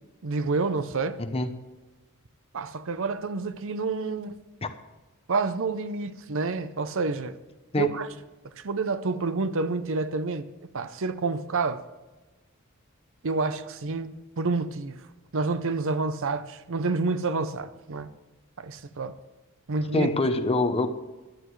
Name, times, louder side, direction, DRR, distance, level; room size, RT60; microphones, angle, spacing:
voice 1, 0.2-1.2 2.5-4.4 5.3-7.4 7.8-8.1 8.6-10.5 10.7-11.8 13.2-15.0 15.3-18.1 18.6-19.1 19.7-20.1, right 3 dB, 65° right, 0.7 m, -28 dB
voice 2, 1.2-1.5 4.6-4.7 7.7-7.9 19.9-20.9, left 2 dB, 25° left, 0.8 m, -25 dB
16.0 x 11.5 x 3.2 m
head